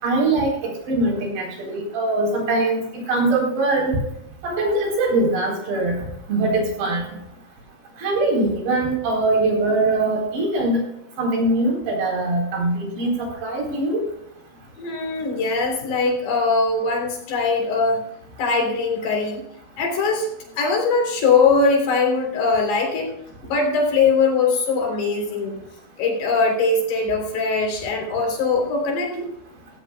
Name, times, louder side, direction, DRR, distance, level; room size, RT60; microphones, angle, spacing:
voice 1, 0.0-4.0 4.4-6.0 6.3-7.0 8.0-10.8 11.2-14.0, right 2 dB, 75° right, 0 dB, 6.1 m, -22 dB
voice 2, 14.8-18.0 18.4-19.4 19.8-20.3 20.6-23.1 23.4-25.5 26.0-29.3, left 4 dB, 70° left, 1 dB, 5.6 m, -21 dB
17.0 x 16.0 x 2.3 m, 0.78 s
omnidirectional pair, 4.9 m